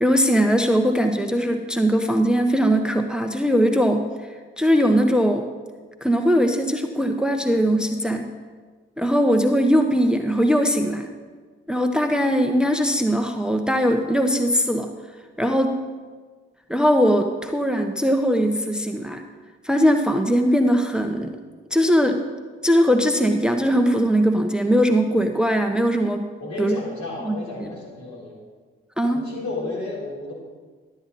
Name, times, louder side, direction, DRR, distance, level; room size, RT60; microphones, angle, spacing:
voice 1, 0.0-4.0 4.6-5.5 6.0-8.3 9.0-11.1 11.7-14.9 15.4-15.7 16.7-19.2 19.6-21.4 21.7-22.2 22.6-26.3 26.6-26.7 27.2-27.3 27.6-27.7 29.0-29.2, equal, 5° right, 5 dB, 1.0 m, -20 dB
voice 2, 26.4-28.4 29.1-30.3, left 3 dB, 65° left, -5 dB, 4.0 m, -32 dB
12.0 x 9.0 x 4.2 m, 1.4 s
hypercardioid pair, 40°, 30 cm